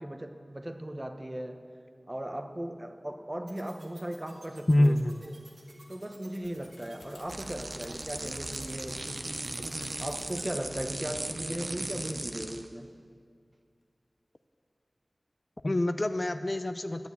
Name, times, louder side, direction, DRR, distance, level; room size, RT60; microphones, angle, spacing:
voice 1, 0.0-1.6 2.1-4.9 5.2-5.3 5.9-9.2 9.6-9.7 10.0-12.9, right 1 dB, 25° right, 6 dB, 1.0 m, -37 dB
sound 1, 3.5-10.4, right 2 dB, 85° right, 2.1 m, -54 dB
voice 2, 4.7-5.2 15.6-17.1, left 1 dB, 40° left, 10 dB, 0.5 m, -26 dB
sound 2, 6.4-8.2 10.8-11.1 11.6-12.4, left 2 dB, 85° left, 0.8 m, -57 dB
sound 3, 7.3-12.7, right 2 dB, 50° right, 0.8 m, -37 dB
11.5 x 7.0 x 8.2 m, 2.2 s
wide cardioid pair, 40°, 0 cm